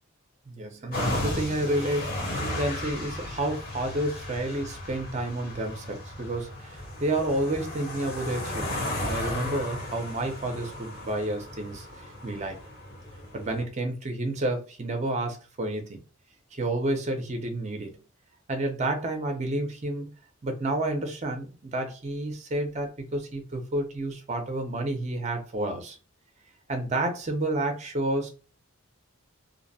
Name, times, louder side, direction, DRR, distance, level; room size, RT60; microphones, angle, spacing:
voice 1, 0.5-11.9 12.2-12.6 13.3-16.0 16.5-17.9 18.5-20.1 20.4-26.0 26.7-28.3, right 1 dB, 30° right, 0.5 m, -30 dB
sound 1, 0.9-13.6, left 1 dB, 45° left, 0.7 m, -35 dB
2.6 x 2.0 x 2.6 m
head